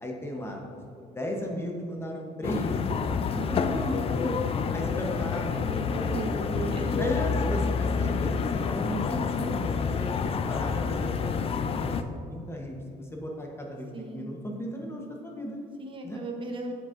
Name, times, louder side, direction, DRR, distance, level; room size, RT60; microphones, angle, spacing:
voice 1, 0.0-4.4 4.7-6.1 6.9-10.1 10.5-15.6 16.0-16.2, equal, 15° left, 0 dB, 0.9 m, -35 dB
sound 1, 2.4-12.0, left 5 dB, 35° left, 0.4 m, -28 dB
voice 2, 4.7-7.2 13.9-14.3 15.8-16.7, right 2 dB, 30° right, 2 dB, 1.0 m, -36 dB
7.9 x 6.5 x 2.5 m, 2.3 s
cardioid pair, 110°, 17 cm